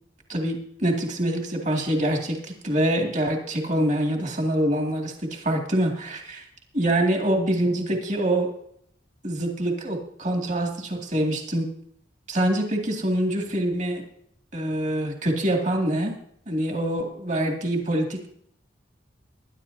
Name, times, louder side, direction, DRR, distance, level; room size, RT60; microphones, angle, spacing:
voice 1, 0.3-6.4 6.7-8.5 9.2-11.7 12.3-14.0 14.5-16.2 16.5-18.3, right 1 dB, 45° right, 1 dB, 2.2 m, -25 dB
21.0 x 11.0 x 2.7 m, 0.67 s
head